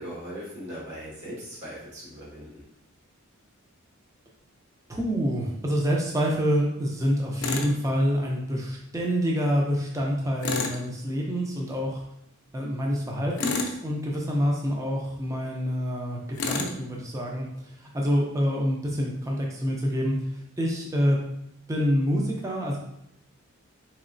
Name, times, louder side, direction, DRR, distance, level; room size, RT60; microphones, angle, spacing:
voice 1, 0.0-2.6, equal, 55° right, -6 dB, 1.4 m, -39 dB
voice 2, 4.9-12.0 12.5-20.2 20.6-21.2 21.7-22.8, equal, 15° right, -1 dB, 0.4 m, -27 dB
Tools, 7.4-7.7 10.4-10.8 13.4-13.8 16.4-16.8, left 4 dB, 65° left, 0.4 m, -29 dB
3.7 x 3.0 x 2.5 m, 0.77 s
head